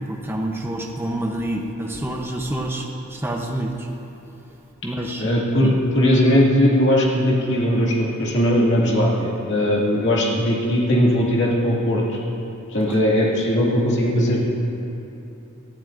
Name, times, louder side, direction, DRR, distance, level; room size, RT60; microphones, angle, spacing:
voice 1, 0.1-3.9 4.8-5.3 5.6-5.8 12.9-13.0, right 1 dB, 10° right, 0 dB, 0.8 m, -28 dB
voice 2, 5.2-5.7 5.9-12.2 12.7-14.5, equal, 60° left, -4 dB, 2.2 m, -19 dB
18.0 x 12.5 x 2.6 m, 2.9 s
head